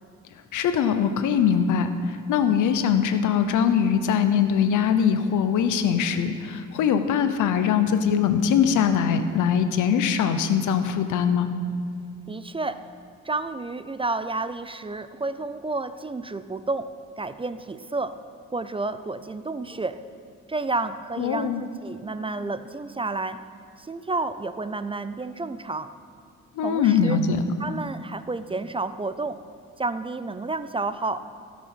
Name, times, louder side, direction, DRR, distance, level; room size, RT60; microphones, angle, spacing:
voice 1, 0.5-11.5 21.2-21.6 26.5-27.4, left 7 dB, 80° left, 9 dB, 0.9 m, -22 dB
voice 2, 12.3-12.8 13.2-16.9 17.2-18.2 18.5-20.0 20.5-23.4 23.8-25.9 26.6-27.2 27.6-29.4 29.8-31.2, right 3 dB, 20° right, 12 dB, 0.4 m, -30 dB
16.5 x 6.3 x 6.2 m, 2.2 s
cardioid pair, 90°, 30 cm